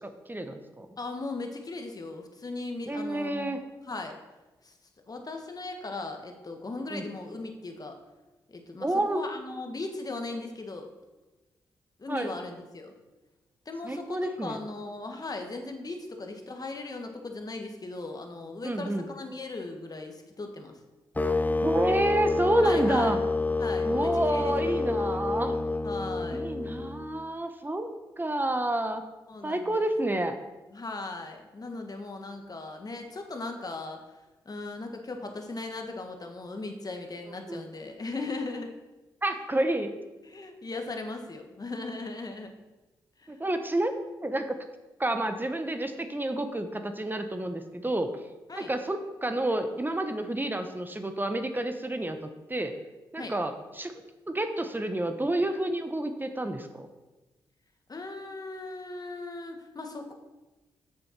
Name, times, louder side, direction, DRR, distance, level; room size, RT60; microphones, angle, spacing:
voice 1, 0.0-0.9 2.9-3.6 6.9-7.0 8.8-9.3 12.1-12.3 13.8-14.6 18.6-19.1 21.6-23.2 23.8-25.6 26.3-27.9 28.2-29.0 29.4-30.4 37.5-37.6 39.2-39.9 43.3-43.9 44.2-44.5 45.0-48.1 48.6-52.8 53.1-53.9 54.3-56.9, right 1 dB, 20° right, 7 dB, 1.0 m, -29 dB
voice 2, 1.0-4.2 4.6-4.7 5.1-8.0 8.5-10.9 12.0-12.9 13.6-20.8 22.6-23.2 23.6-24.9 25.8-26.4 29.3-29.8 30.7-38.7 40.2-42.5 43.2-43.4 48.5-48.7 53.2-53.3 57.9-60.1, left 3 dB, 40° left, 4 dB, 1.6 m, -38 dB
sound 1, 21.2-27.2, left 3 dB, 15° left, 0.6 m, -28 dB
6.9 x 6.6 x 5.9 m, 1.1 s
supercardioid pair, 40°, 10 cm